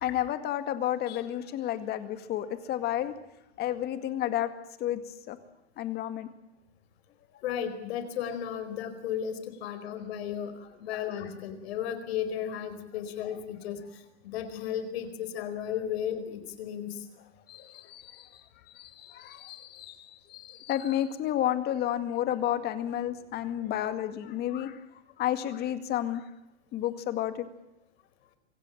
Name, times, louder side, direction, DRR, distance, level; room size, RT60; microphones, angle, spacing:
voice 1, 0.0-3.1 3.6-4.5 4.8-5.0 5.3-5.4 5.8-6.3 17.5-18.4 18.7-24.8 25.2-26.2 26.7-27.5, left 11 dB, 30° left, 10 dB, 2.0 m, -31 dB
voice 2, 7.4-17.1, left 9 dB, 65° left, 10 dB, 4.6 m, -34 dB
25.0 x 16.5 x 9.1 m, 0.92 s
supercardioid pair, 145°, 34 cm